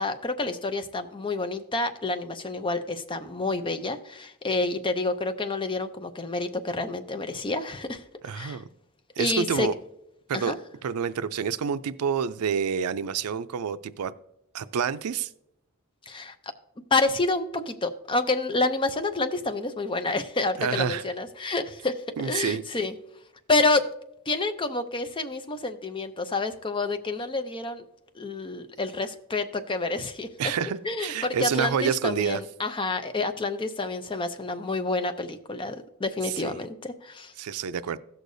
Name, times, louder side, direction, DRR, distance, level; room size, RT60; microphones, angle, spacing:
voice 1, 0.0-8.6 9.2-9.7 10.3-10.6 16.1-16.3 16.9-22.9 23.5-23.9 24.3-27.8 28.1-30.3 30.8-37.3, left 3 dB, 25° left, 0.6 m, -28 dB
voice 2, 8.2-8.7 9.2-9.7 10.3-10.5 10.8-14.1 14.5-15.3 20.6-21.0 22.2-22.6 30.4-32.4 36.3-36.5 37.4-38.0, right 7 dB, 85° right, 0.4 m, -28 dB
16.0 x 6.5 x 2.6 m
head